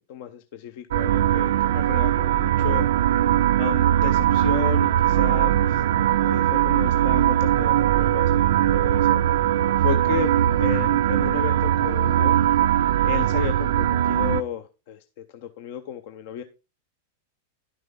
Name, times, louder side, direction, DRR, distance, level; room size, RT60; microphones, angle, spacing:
voice 1, 0.1-2.9 3.6-9.3 9.8-12.4 13.0-16.4, left 10 dB, 55° left, 0.6 m, -33 dB
sound 1, 0.9-14.4, right 11 dB, 65° right, 0.3 m, -20 dB
11.0 x 6.2 x 3.6 m
figure-of-eight pair, 95°, 0 cm